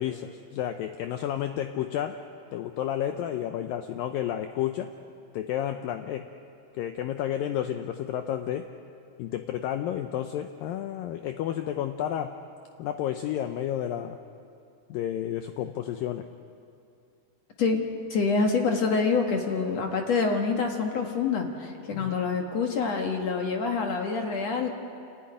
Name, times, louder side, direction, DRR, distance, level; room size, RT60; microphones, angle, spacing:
voice 1, 0.0-2.2 2.5-4.9 5.3-6.3 6.7-8.7 9.2-12.4 12.8-14.2 14.9-16.3 21.9-22.2, left 11 dB, 80° left, 7 dB, 2.1 m, -31 dB
voice 2, 18.1-24.7, left 4 dB, 55° left, 3 dB, 1.9 m, -26 dB
28.5 x 14.5 x 10.0 m, 2.5 s
omnidirectional pair, 4.8 m